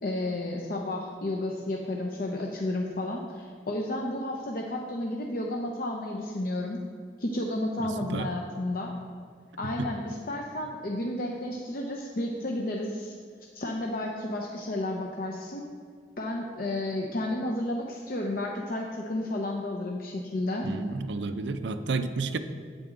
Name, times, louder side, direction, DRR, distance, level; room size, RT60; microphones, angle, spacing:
voice 1, 0.0-6.8 7.2-8.9 9.6-13.2 13.5-15.7 16.2-20.7, left 1 dB, 55° left, 0 dB, 0.7 m, -32 dB
voice 2, 7.8-8.3 9.8-9.9 20.6-22.4, right 3 dB, 90° right, 10 dB, 0.6 m, -31 dB
9.1 x 8.5 x 3.8 m, 2.1 s
head